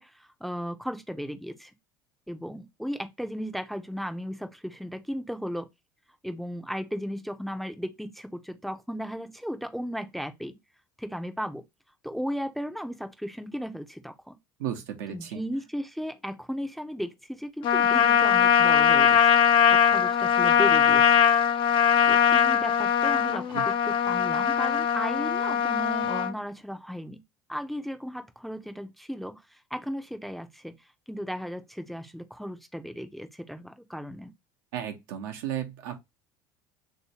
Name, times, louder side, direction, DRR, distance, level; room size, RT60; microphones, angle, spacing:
voice 1, 0.0-1.7 2.3-5.7 6.2-10.6 11.0-11.6 12.0-14.4 15.1-19.3 19.7-21.2 22.0-27.2 27.5-30.7 31.1-34.3, equal, ahead, 0.5 m, -35 dB
voice 2, 14.6-15.4 23.5-23.6 34.7-36.0, right 10 dB, 80° right, 0.8 m, -34 dB
Trumpet, 17.6-26.3, left 8 dB, 50° left, 0.5 m, -21 dB
3.1 x 2.8 x 2.8 m
supercardioid pair, 90°, 11 cm